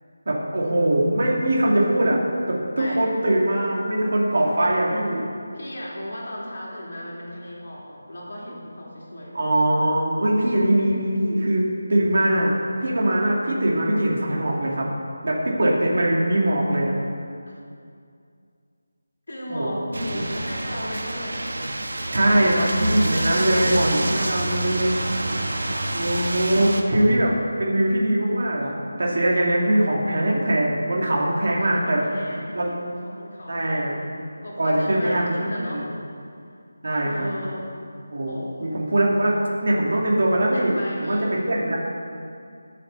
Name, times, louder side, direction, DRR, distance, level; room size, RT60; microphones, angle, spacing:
voice 1, 0.3-2.2 2.5-5.3 9.3-14.9 15.2-16.9 19.5-19.7 20.1-20.2 22.1-24.9 25.9-28.7 29.0-32.0 32.5-32.7 33.5-34.0 34.6-35.3 35.7-35.9 36.8-37.3 38.1-39.3 39.6-40.7 41.0-41.2 41.4-41.8, right 1 dB, 45° right, -3 dB, 2.5 m, -22 dB
voice 2, 2.7-3.1 5.5-9.5 19.3-21.5 22.1-22.5 23.1-25.3 29.5-30.0 31.6-34.0 34.4-35.9 36.4-36.5 37.0-37.7 38.2-38.8 40.5-41.3, left 1 dB, 55° left, -5 dB, 3.4 m, -36 dB
sound 1, 19.9-26.8, right 1 dB, 90° right, 1.4 m, -27 dB
20.5 x 7.4 x 4.0 m, 2.3 s
figure-of-eight pair, 180°, 0 cm